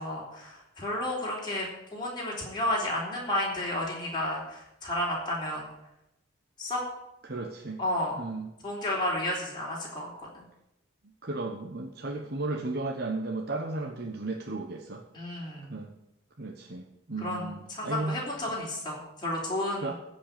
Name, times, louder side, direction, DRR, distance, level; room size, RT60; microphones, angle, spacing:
voice 1, 0.0-5.7 6.6-6.8 7.8-8.2 8.6-10.3 15.1-15.8 17.2-19.9, left 1 dB, 20° left, -4 dB, 3.7 m, -32 dB
voice 2, 7.2-7.8 8.2-8.5 11.2-15.0 15.7-15.9 16.4-18.2 18.5-18.6 19.8-19.9, right 2 dB, 50° right, 1 dB, 1.0 m, -34 dB
15.0 x 5.4 x 8.6 m, 0.86 s
head